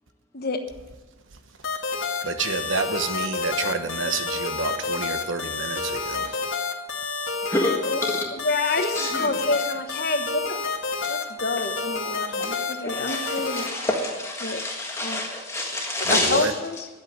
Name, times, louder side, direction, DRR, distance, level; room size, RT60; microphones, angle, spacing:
sound 1, 1.6-13.7, left 4 dB, 85° left, 2.0 m, -29 dB
voice 1, 2.2-6.4 16.0-16.5, right 4 dB, 75° right, 8 dB, 1.1 m, -29 dB
voice 2, 7.4-7.7 8.1-8.3 8.9-9.3 12.0-16.5, left 1 dB, 15° left, -1 dB, 1.6 m, -28 dB
voice 3, 8.4-10.6 11.1-13.7 14.4-14.6 15.0-15.2 16.1-16.9, left 3 dB, 50° left, 6 dB, 1.2 m, -28 dB
11.0 x 8.6 x 9.6 m, 1.2 s
head